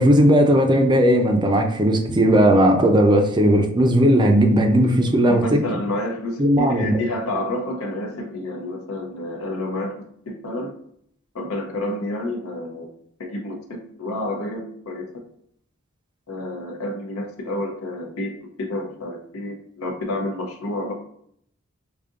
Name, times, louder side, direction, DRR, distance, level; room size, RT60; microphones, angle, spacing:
voice 1, 0.0-5.6 6.4-7.0, equal, 20° right, 4 dB, 0.4 m, -17 dB
voice 2, 5.3-10.0 10.3-10.7 11.3-12.9 13.2-13.6 14.0-15.1 16.3-20.9, left 1 dB, 75° left, 0 dB, 0.7 m, -29 dB
5.0 x 2.7 x 2.5 m, 0.67 s
head